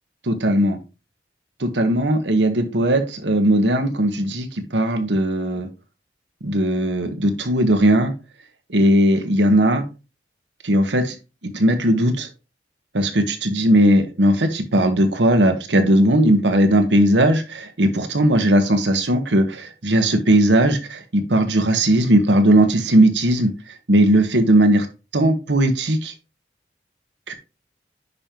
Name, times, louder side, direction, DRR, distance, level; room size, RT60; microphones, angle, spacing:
voice 1, 0.2-0.8 1.6-5.7 6.4-8.1 8.7-9.8 10.6-11.1 11.4-12.3 12.9-24.9 25.1-26.1 27.3-27.4, right 1 dB, 85° right, 7 dB, 1.3 m, -18 dB
9.7 x 5.3 x 3.0 m, 0.30 s
head